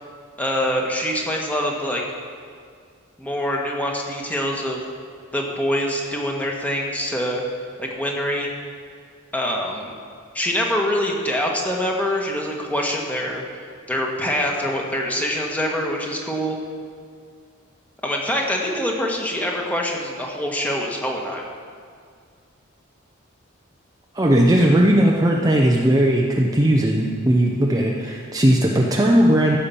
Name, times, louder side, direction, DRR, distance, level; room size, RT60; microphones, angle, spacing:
voice 1, 0.4-2.0 3.2-4.8 5.3-7.4 7.8-8.5 9.3-9.9 10.3-16.6 18.0-21.5, equal, 10° left, -1 dB, 1.5 m, -25 dB
voice 2, 24.1-29.6, right 1 dB, 20° right, -1 dB, 0.7 m, -17 dB
15.0 x 5.8 x 7.0 m, 2.1 s
head